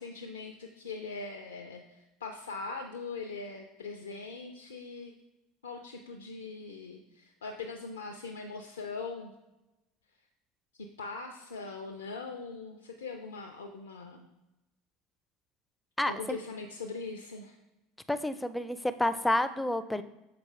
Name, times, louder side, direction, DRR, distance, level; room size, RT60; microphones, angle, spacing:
voice 1, 0.0-5.1 5.6-9.3 10.8-14.2 16.1-17.6, left 4 dB, 80° left, 3 dB, 0.5 m, -41 dB
voice 2, 16.0-16.4 18.1-20.0, left 1 dB, 5° left, 12 dB, 0.4 m, -29 dB
6.8 x 4.6 x 3.2 m, 0.98 s
figure-of-eight pair, 70°, 0 cm